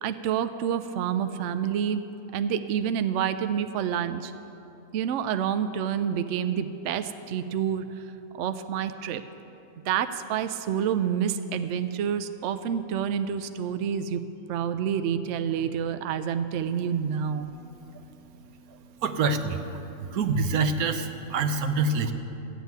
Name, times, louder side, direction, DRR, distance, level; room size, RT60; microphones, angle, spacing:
voice 1, 0.0-2.0 2.3-4.3 4.9-8.1 8.3-9.2 9.9-14.2 14.5-17.5, right 8 dB, 65° right, 10 dB, 0.8 m, -28 dB
voice 2, 18.7-19.6 20.0-22.1, right 4 dB, 85° right, 8 dB, 1.3 m, -26 dB
13.5 x 8.1 x 9.2 m, 3.0 s
omnidirectional pair, 1.5 m